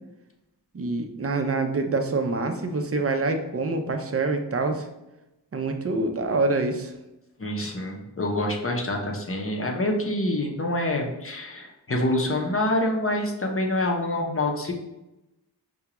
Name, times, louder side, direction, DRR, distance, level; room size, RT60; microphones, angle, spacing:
voice 1, 0.7-4.9 5.5-6.9, right 3 dB, 35° right, 6 dB, 0.5 m, -26 dB
voice 2, 7.4-14.7, left 1 dB, 35° left, 0 dB, 0.6 m, -26 dB
4.8 x 2.2 x 2.9 m, 0.95 s
wide cardioid pair, 60°, 40 cm